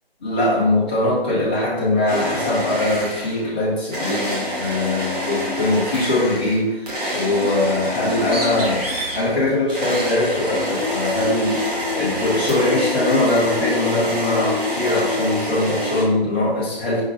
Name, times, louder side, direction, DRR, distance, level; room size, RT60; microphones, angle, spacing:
voice 1, 0.2-8.9 9.1-11.6 11.9-17.0, left 2 dB, 10° left, -8 dB, 0.6 m, -21 dB
sound 1, 2.1-3.5 3.9-16.0, left 1 dB, 40° right, 1.4 m, -26 dB
Bird, 7.9-12.8, right 1 dB, 65° right, 1.4 m, -35 dB
5.2 x 3.7 x 2.6 m, 0.97 s
figure-of-eight pair, 150°, 30 cm